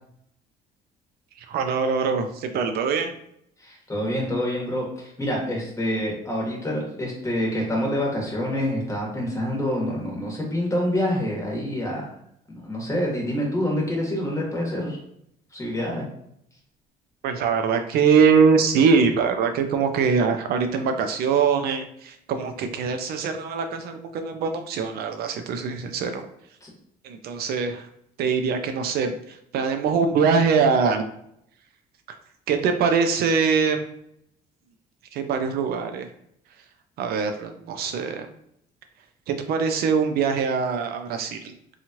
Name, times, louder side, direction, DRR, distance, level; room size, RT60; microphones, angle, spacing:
voice 1, 1.4-3.1 17.2-26.3 27.0-27.9 28.2-31.0 32.5-33.8 35.1-36.1 37.0-38.3 39.3-41.5, right 5 dB, 65° right, 6 dB, 0.4 m, -23 dB
voice 2, 3.6-12.1 12.5-15.0 15.5-16.0 26.6-26.7, left 1 dB, 15° left, -3 dB, 1.2 m, -27 dB
2.9 x 2.3 x 2.7 m, 0.73 s
cardioid pair, 110°, 17 cm